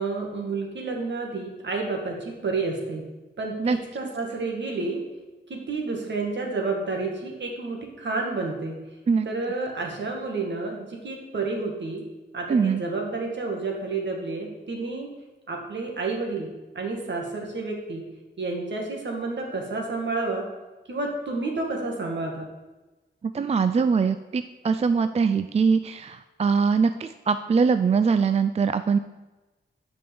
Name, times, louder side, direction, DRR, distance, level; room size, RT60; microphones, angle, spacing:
voice 1, 0.0-3.1 3.4-5.0 5.5-8.8 9.3-12.0 12.3-15.1 15.5-18.1 18.4-20.4 20.9-22.5, right 3 dB, 70° right, 1 dB, 2.0 m, -30 dB
voice 2, 12.5-12.8 23.2-29.0, right 5 dB, 35° right, 11 dB, 0.4 m, -22 dB
7.6 x 5.3 x 7.0 m, 1.1 s
wide cardioid pair, 85°, 20 cm